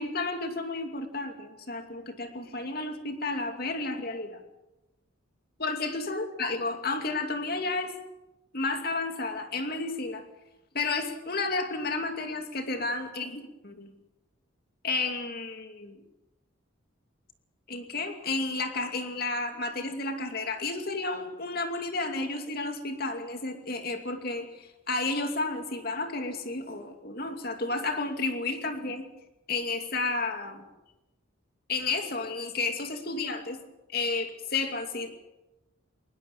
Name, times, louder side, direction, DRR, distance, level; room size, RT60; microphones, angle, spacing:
voice 1, 0.0-4.4 5.6-7.9 8.5-10.2 10.7-13.9 14.8-16.0 17.7-29.1 29.5-30.6 31.7-33.6 33.9-35.1, left 3 dB, 50° left, 6 dB, 2.6 m, -32 dB
21.0 x 20.5 x 7.2 m, 1.0 s
head